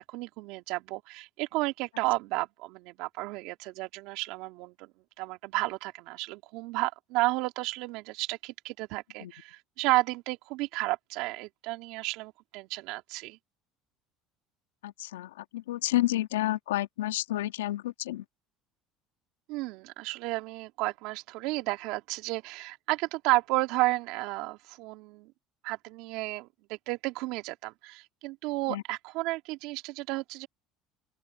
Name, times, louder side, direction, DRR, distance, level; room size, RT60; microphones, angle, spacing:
voice 1, 0.0-4.9 5.2-13.4 19.5-25.3 25.6-30.5, right 21 dB, 70° right, 2.7 m, -32 dB
voice 2, 14.8-18.2 28.7-28.8, left 15 dB, 90° left, 1.8 m, -30 dB
open air
hypercardioid pair, 80°, 0 cm